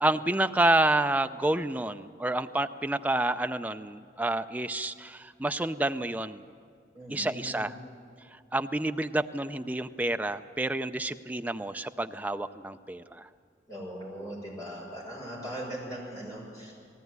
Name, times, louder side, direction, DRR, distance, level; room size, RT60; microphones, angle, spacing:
voice 1, 0.0-6.4 7.1-7.7 8.5-13.3, right 1 dB, 10° right, 8 dB, 0.5 m, -29 dB
voice 2, 6.9-7.7 13.7-16.7, equal, 20° left, -3 dB, 6.7 m, -39 dB
19.5 x 16.0 x 9.4 m, 2.2 s
head